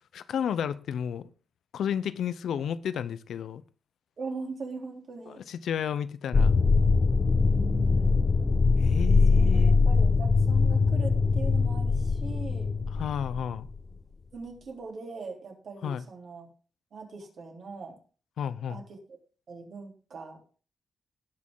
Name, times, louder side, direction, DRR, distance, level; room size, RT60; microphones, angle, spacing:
voice 1, 0.1-1.3 1.7-3.6 5.3-6.6 8.8-9.8 12.9-13.7 15.8-16.0 18.4-18.8, left 8 dB, 90° left, 0.7 m, -32 dB
voice 2, 4.2-5.5 7.3-8.3 9.3-12.7 14.3-16.5 16.9-18.0 18.7-19.0 19.5-20.4, right 4 dB, 60° right, 3.6 m, -41 dB
sound 1, 6.3-13.8, left 4 dB, 35° left, 0.9 m, -22 dB
18.0 x 6.4 x 3.8 m
wide cardioid pair, 130°, 0 cm